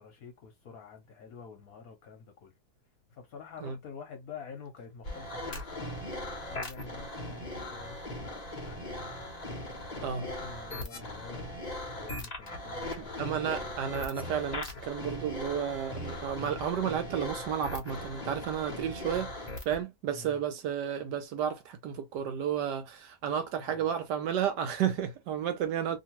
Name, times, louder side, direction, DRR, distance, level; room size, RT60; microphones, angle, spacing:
voice 1, 0.0-2.6 3.1-9.0 9.9-11.6 11.9-13.7 20.1-20.4 23.6-23.9, left 5 dB, 60° left, 1.0 m, -48 dB
sound 1, 5.0-19.8, left 1 dB, 45° left, 0.5 m, -39 dB
voice 2, 13.2-19.4 19.7-26.0, right 8 dB, 70° right, 1.1 m, -32 dB
2.9 x 2.6 x 2.9 m
omnidirectional pair, 2.1 m